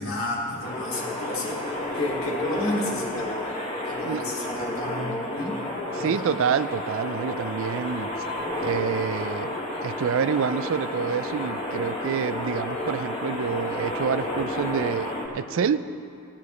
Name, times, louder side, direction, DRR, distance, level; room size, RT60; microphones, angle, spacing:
voice 1, 0.0-3.4 3.8-5.6 6.0-6.3, left 2 dB, 70° left, -2 dB, 2.1 m, -32 dB
sound 1, 0.6-15.3, left 1 dB, 25° left, 1.5 m, -31 dB
voice 2, 6.0-8.1 8.6-15.8, right 7 dB, 65° right, 14 dB, 0.4 m, -27 dB
16.5 x 10.0 x 3.2 m, 2.5 s
head